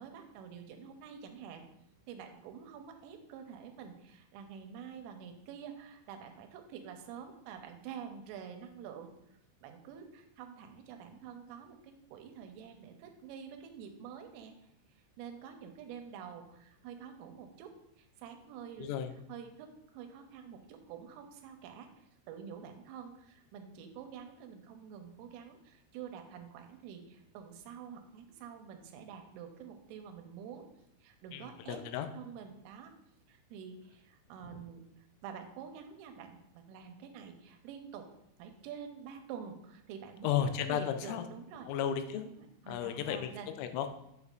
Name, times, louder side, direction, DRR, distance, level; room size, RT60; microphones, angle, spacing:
voice 1, 0.0-1.6 2.1-9.1 9.6-14.6 15.0-18.9 19.3-30.7 31.0-32.9 33.3-38.1 38.4-41.7 42.1-43.5, right 7 dB, 85° right, 5 dB, 3.2 m, -48 dB
voice 2, 18.8-19.1 31.3-32.1 40.2-41.3 41.7-42.2 42.7-43.9, left 9 dB, 90° left, 7 dB, 3.2 m, -34 dB
7.8 x 5.3 x 2.4 m, 0.80 s
omnidirectional pair, 5.7 m